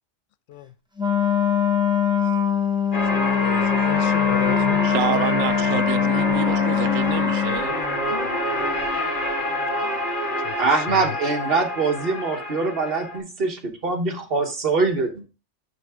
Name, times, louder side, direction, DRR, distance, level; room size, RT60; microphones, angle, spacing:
Wind instrument woodwind instrument, 1.0-7.6, left 8 dB, 5° right, 0.7 m, -22 dB
voice 1, 2.9-4.9 10.4-11.2, left 11 dB, 65° left, 0.8 m, -34 dB
sound 1, 2.9-13.2, left 1 dB, 40° left, 1.6 m, -26 dB
voice 2, 4.8-7.8, right 11 dB, 80° right, 0.9 m, -28 dB
voice 3, 10.6-15.3, right 4 dB, 50° right, 1.4 m, -23 dB
9.4 x 3.3 x 4.9 m
omnidirectional pair, 1.3 m